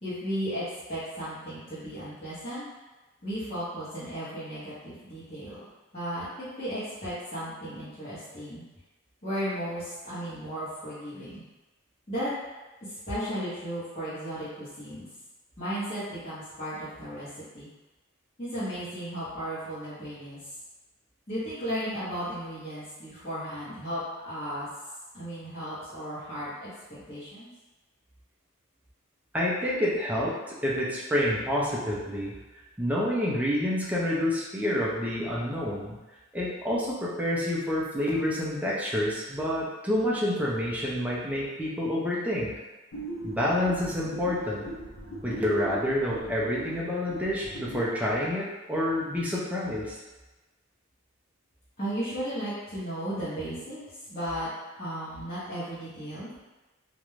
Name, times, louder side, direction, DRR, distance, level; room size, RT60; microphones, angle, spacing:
voice 1, 0.0-2.7 3.2-5.6 5.9-8.6 9.2-11.4 12.1-12.3 13.1-15.1 15.6-17.3 17.5-17.7 18.4-20.4 21.3-24.7 25.1-27.5 51.8-53.8 54.1-54.5 54.8-56.3, equal, 30° left, -14 dB, 0.9 m, -35 dB
voice 2, 29.3-32.3 32.8-36.0 36.3-42.5 43.2-44.6 45.2-50.0, left 1 dB, 5° right, -6 dB, 0.5 m, -28 dB
sound 1, 42.9-48.0, right 1 dB, 60° left, 0.7 m, -39 dB
2.5 x 2.1 x 3.1 m, 1.2 s
head